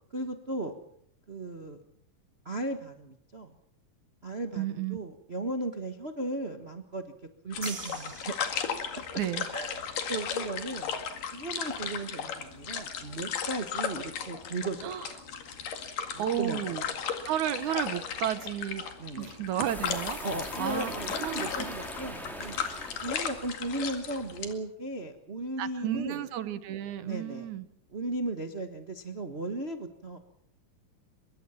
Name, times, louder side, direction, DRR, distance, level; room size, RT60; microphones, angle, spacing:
voice 1, 0.1-0.8 1.3-1.8 2.4-3.5 4.2-7.1 7.4-8.3 8.9-9.0 9.5-10.9 11.3-15.2 16.1-16.8 19.0-19.5 20.2-22.6 23.0-26.2 27.0-27.5 27.9-30.2, right 2 dB, 80° right, 6 dB, 0.5 m, -36 dB
voice 2, 4.6-5.0 9.2-9.5 14.8-15.1 16.2-16.8 17.2-18.8 19.2-20.2 20.6-20.9 21.2-21.7 25.6-27.7, right 11 dB, 65° right, 13 dB, 2.4 m, -32 dB
sound 1, 7.5-24.5, left 7 dB, 75° left, 3.7 m, -36 dB
sound 2, 7.6-9.2, right 6 dB, 40° right, 2.2 m, -44 dB
sound 3, 19.6-24.1, equal, ahead, 4.2 m, -41 dB
24.5 x 22.5 x 5.8 m, 0.70 s
omnidirectional pair, 3.9 m